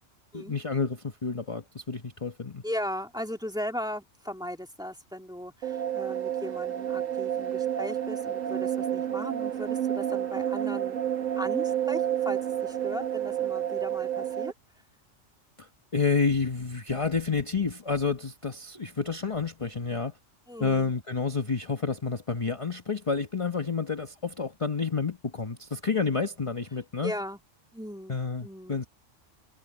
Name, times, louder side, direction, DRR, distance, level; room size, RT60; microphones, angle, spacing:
voice 1, 0.3-2.6 15.6-20.1 20.6-27.1 28.1-28.9, left 4 dB, 25° left, 1.1 m, -29 dB
voice 2, 2.6-11.0 11.4-14.5 20.5-20.9 27.0-27.4 27.7-28.8, equal, 5° right, 2.0 m, -37 dB
sound 1, 5.6-14.5, right 10 dB, 85° right, 1.7 m, -30 dB
omnidirectional pair, 1.3 m